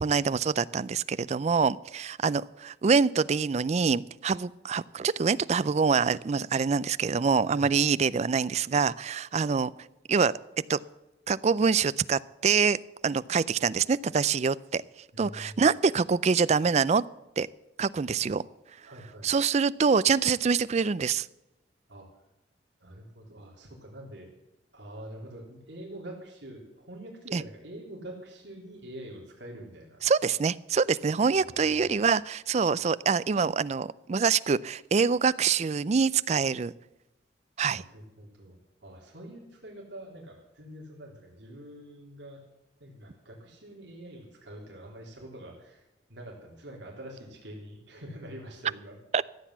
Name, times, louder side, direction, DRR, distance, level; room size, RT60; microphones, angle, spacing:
voice 1, 0.0-9.7 10.1-10.3 10.7-10.8 11.3-12.8 13.0-14.8 15.2-17.0 17.4-17.5 17.8-18.4 19.2-21.3 27.3-27.4 30.0-36.7 37.6-37.8 49.1-49.2, right 5 dB, 35° right, 18 dB, 0.4 m, -25 dB
voice 2, 15.1-15.7 18.8-19.3 21.9-22.1 22.8-24.3 24.7-30.0 31.3-32.1 37.7-38.6 38.8-42.4 42.8-45.8 46.1-49.0, right 1 dB, 70° right, -1 dB, 3.3 m, -45 dB
14.5 x 8.0 x 7.2 m, 0.98 s
head